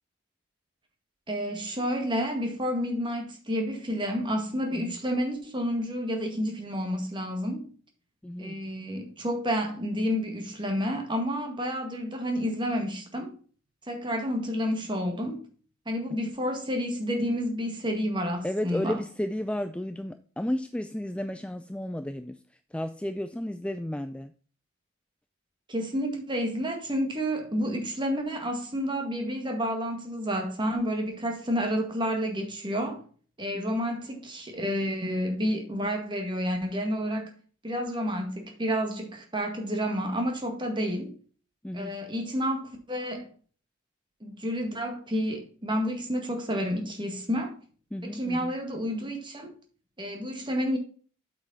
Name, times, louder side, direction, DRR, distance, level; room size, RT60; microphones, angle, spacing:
voice 1, 1.3-7.7 8.4-13.3 13.9-15.4 15.9-19.0 25.7-33.0 33.4-37.3 37.6-41.1 41.7-43.3 44.2-47.5 48.0-49.5 50.0-50.8, equal, 25° right, 1.8 m, -30 dB
voice 2, 8.2-8.6 16.1-16.2 18.4-24.3 33.5-33.8 41.6-41.9 47.9-48.5, left 1 dB, 5° left, 0.3 m, -33 dB
8.1 x 6.1 x 4.1 m
head